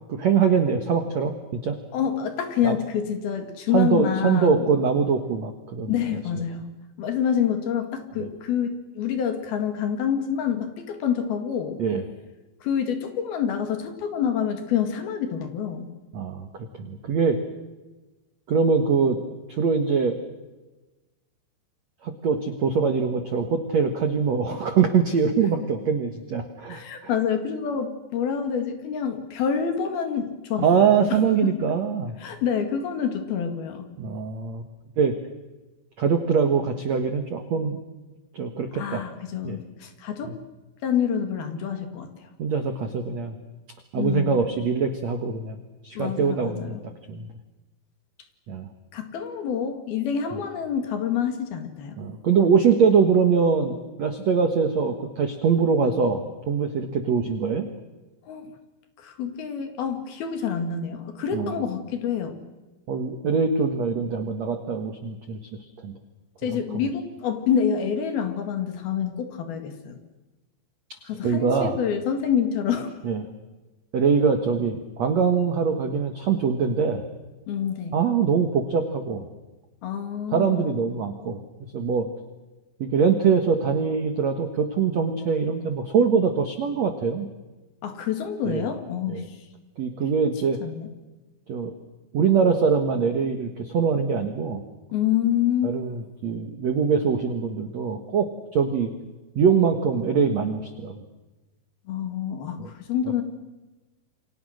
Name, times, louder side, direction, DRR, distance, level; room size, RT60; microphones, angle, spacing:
voice 1, 0.1-1.8 2.6-2.8 3.7-5.9 8.2-8.3 11.8-12.0 16.1-16.5 16.8-17.4 18.5-19.2 19.5-20.2 22.0-27.1 30.6-32.1 34.0-34.6 35.0-35.2 36.0-37.8 38.3-39.0 39.4-39.6 40.2-40.3 42.4-43.4 43.9-45.6 45.8-46.8 47.1-47.3 48.5-48.7 52.0-57.7 61.3-61.6 62.9-65.4 65.8-65.9 71.2-71.8 73.0-73.3 73.9-77.0 77.9-79.2 80.3-82.1 82.8-87.3 88.5-88.7 89.1-89.2 89.8-90.6 91.5-91.7 92.1-94.6 95.6-98.9 99.4-101.0 102.6-102.7, right 6 dB, 65° right, 6 dB, 1.7 m, -23 dB
voice 2, 1.9-4.7 5.9-6.7 7.0-11.8 12.6-15.9 26.7-31.5 32.2-33.9 38.8-40.4 40.8-42.1 44.0-44.4 46.0-46.8 48.9-52.0 58.3-58.5 59.0-62.4 66.4-70.0 71.0-72.9 77.5-78.0 79.8-80.7 87.8-89.4 90.6-90.9 94.9-95.8 101.9-103.2, left 8 dB, 60° left, 7 dB, 3.6 m, -27 dB
29.0 x 24.5 x 6.5 m, 1.2 s
omnidirectional pair, 5.4 m